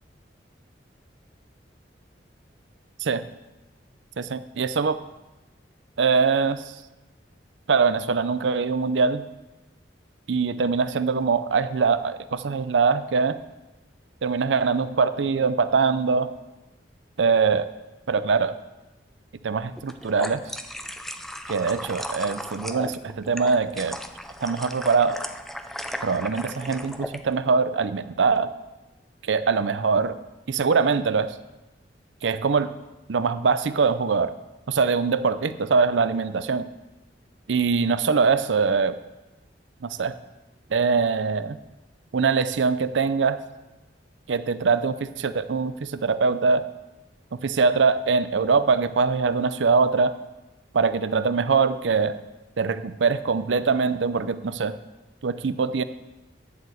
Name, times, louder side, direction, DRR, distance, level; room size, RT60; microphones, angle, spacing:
voice 1, 4.2-5.0 6.0-6.6 7.7-9.2 10.3-13.4 14.2-16.3 17.2-17.7 18.1-18.5 19.4-20.4 21.5-24.0 24.4-25.2 26.0-28.5 29.3-30.2 30.5-31.3 32.2-32.7 33.1-34.3 34.7-36.6 37.5-39.0 39.8-40.1 40.7-41.6 42.1-43.4 44.3-46.7 47.4-50.1 50.7-52.2 52.6-54.8 55.2-55.8, right 5 dB, 85° right, 13 dB, 0.5 m, -23 dB
sound 1, 19.8-27.2, equal, ahead, 0.4 m, -36 dB
11.0 x 4.8 x 7.8 m, 1.1 s
head